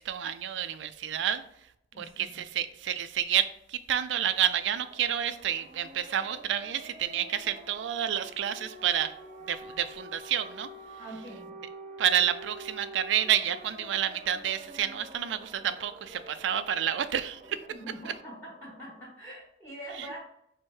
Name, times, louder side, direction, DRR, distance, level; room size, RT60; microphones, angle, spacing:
voice 1, 0.0-1.4 2.0-9.1 9.4-10.7 12.0-17.6 18.0-18.1 19.9-20.1, right 10 dB, 70° right, 12 dB, 0.3 m, -29 dB
voice 2, 1.9-2.4 11.0-11.5 17.7-20.2, right 1 dB, 15° left, -6 dB, 1.4 m, -44 dB
sound 1, 4.4-19.0, right 1 dB, 40° right, 0.8 m, -48 dB
4.4 x 2.1 x 4.6 m, 0.75 s
head